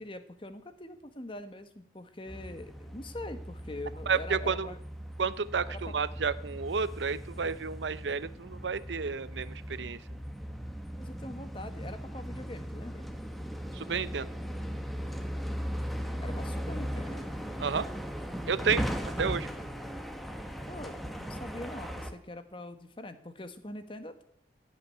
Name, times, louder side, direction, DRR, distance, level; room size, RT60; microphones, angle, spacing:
voice 1, 0.0-4.8 5.7-6.0 11.0-13.1 16.2-17.3 20.7-24.2, left 1 dB, 30° left, 9 dB, 1.2 m, -43 dB
sound 1, 2.3-22.1, equal, ahead, 1.1 m, -38 dB
voice 2, 4.1-4.7 5.2-10.0 13.7-14.3 17.6-17.9 18.5-18.8 19.2-19.5, right 5 dB, 80° right, 16 dB, 0.6 m, -31 dB
16.5 x 5.8 x 9.7 m, 0.71 s
head